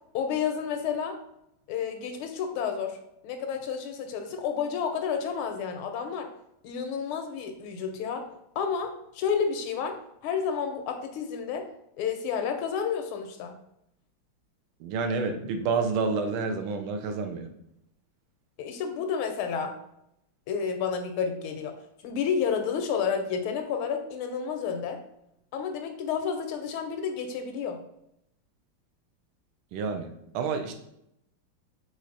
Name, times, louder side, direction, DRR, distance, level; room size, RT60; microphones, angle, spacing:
voice 1, 0.1-1.2 1.7-6.3 6.6-8.3 8.6-11.7 12.0-13.6 18.6-19.7 20.5-21.8 22.0-25.0 25.5-27.8, left 6 dB, 85° left, 6 dB, 1.5 m, -30 dB
voice 2, 14.8-17.5 29.7-30.1 30.3-30.7, right 4 dB, 80° right, 6 dB, 1.5 m, -29 dB
4.7 x 4.0 x 2.5 m, 0.80 s
omnidirectional pair, 2.3 m